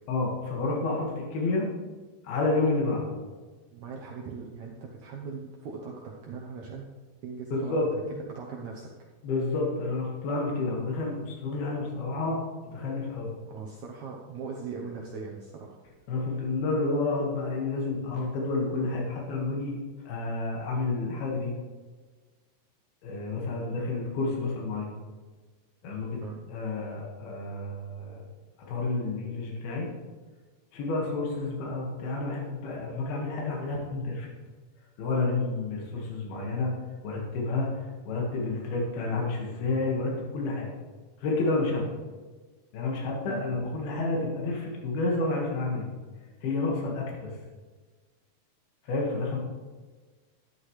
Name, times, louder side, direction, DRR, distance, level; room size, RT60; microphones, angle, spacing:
voice 1, 0.1-1.7 2.2-3.0 7.5-7.9 9.2-12.4 12.7-13.3 16.1-19.8 20.1-21.5 23.0-24.9 25.8-26.2 26.5-28.2 28.7-29.9 30.7-34.3 35.0-36.7 37.0-37.8 38.1-40.7 41.2-41.9 42.7-45.9 46.4-47.3 48.8-49.4, left 3 dB, 75° left, -2 dB, 3.7 m, -30 dB
voice 2, 3.7-6.9 7.2-7.7 8.1-8.9 13.4-15.8 26.1-26.4 43.3-43.5, right 5 dB, 70° right, -1 dB, 1.8 m, -40 dB
12.0 x 10.5 x 3.2 m, 1.4 s
omnidirectional pair, 4.4 m